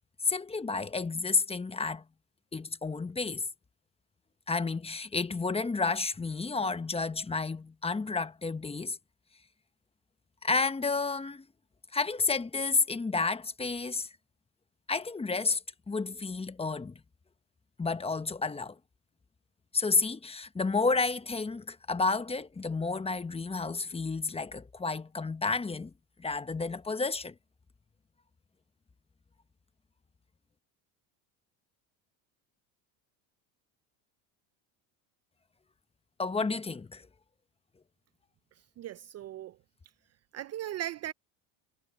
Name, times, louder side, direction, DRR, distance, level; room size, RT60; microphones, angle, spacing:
voice 1, 0.2-2.0 2.5-3.5 4.5-9.0 10.4-11.4 11.9-14.1 14.9-15.6 15.9-17.0 17.8-18.8 19.7-25.9 26.2-27.3 36.2-37.1, left 4 dB, 15° left, 1.1 m, -31 dB
voice 2, 38.8-39.6 40.3-41.1, right 12 dB, 35° right, 0.5 m, -38 dB
supercardioid pair, 105°, 42 cm